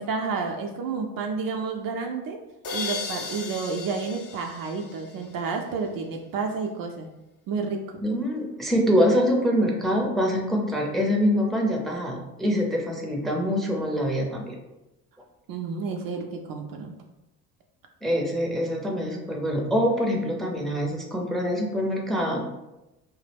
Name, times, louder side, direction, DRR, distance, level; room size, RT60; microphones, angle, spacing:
voice 1, 0.0-2.4 2.7-7.1 7.5-7.8 15.5-17.0, right 4 dB, 50° right, 3 dB, 0.5 m, -30 dB
sound 1, 2.6-5.5, left 4 dB, 50° left, 0.6 m, -35 dB
voice 2, 8.0-14.5 18.0-22.4, equal, ahead, 0 dB, 0.5 m, -25 dB
2.2 x 2.1 x 3.3 m, 0.96 s
hypercardioid pair, 55°, 43 cm